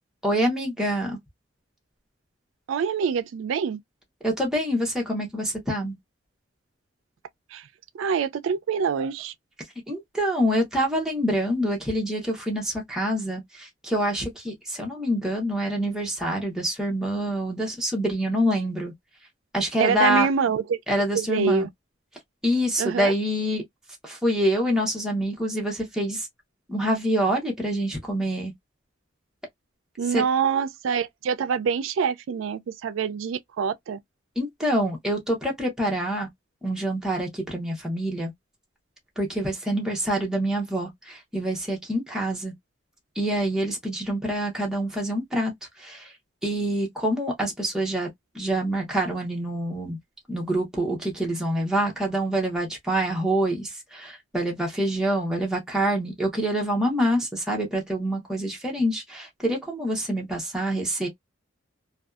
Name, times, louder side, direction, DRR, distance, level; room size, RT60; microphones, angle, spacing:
voice 1, 0.2-1.2 4.2-6.0 9.9-18.9 19.5-20.3 20.9-21.7 22.4-23.6 24.0-26.3 26.7-28.5 30.1-30.2 34.4-36.3 36.6-38.3 39.2-42.5 43.2-45.5 45.8-46.1 46.4-48.1 48.3-50.0 50.3-61.1, equal, 5° right, 0.8 m, -26 dB
voice 2, 2.7-3.8 7.5-7.7 7.9-9.3 19.8-20.8 21.1-21.7 22.8-23.1 30.0-34.0, right 6 dB, 80° right, 0.3 m, -25 dB
2.5 x 2.3 x 2.3 m
head